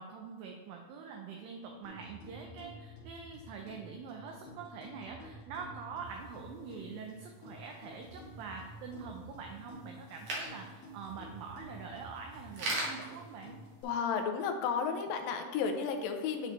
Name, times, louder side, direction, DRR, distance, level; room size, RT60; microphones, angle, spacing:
voice 1, 0.0-13.6, right 5 dB, 80° right, 2 dB, 2.1 m, -45 dB
sound 1, 1.8-13.8, equal, 50° left, 2.6 m, -51 dB
sound 2, 6.1-14.2, right 2 dB, 60° right, 1.9 m, -44 dB
voice 2, 13.8-16.5, left 6 dB, 80° left, 5 dB, 2.1 m, -33 dB
10.5 x 4.0 x 3.0 m, 1.5 s
omnidirectional pair, 4.4 m